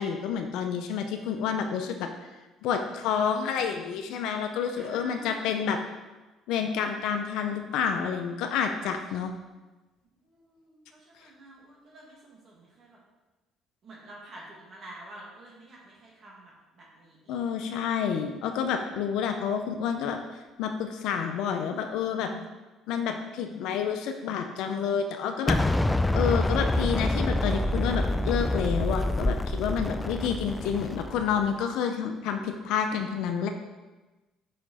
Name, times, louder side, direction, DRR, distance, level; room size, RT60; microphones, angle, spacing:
voice 1, 0.0-2.1 2.6-5.8 6.5-9.3 17.3-20.2 20.6-22.5 22.9-25.7 26.1-33.5, left 7 dB, 80° left, 5 dB, 0.5 m, -29 dB
voice 2, 4.7-5.8 10.2-13.0 13.8-18.3, right 2 dB, 50° right, -4 dB, 1.7 m, -49 dB
Explosion, 25.5-31.5, left 1 dB, 10° left, 0.3 m, -27 dB
5.7 x 5.1 x 4.1 m, 1.1 s
supercardioid pair, 85°, 0 cm